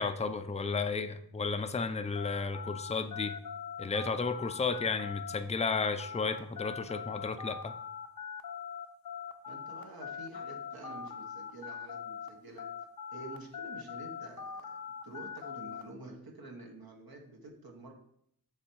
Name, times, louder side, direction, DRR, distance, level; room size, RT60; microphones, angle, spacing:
voice 1, 0.0-3.4 3.8-7.7, left 4 dB, 20° left, 9 dB, 0.4 m, -33 dB
sound 1, 2.1-12.3 12.6-15.8, left 7 dB, 60° left, 0.7 m, -42 dB
voice 2, 9.5-12.7 13.1-14.8 15.0-17.9, right 2 dB, 65° right, 1 dB, 1.2 m, -48 dB
7.1 x 3.4 x 4.5 m, 0.69 s
wide cardioid pair, 65°, 39 cm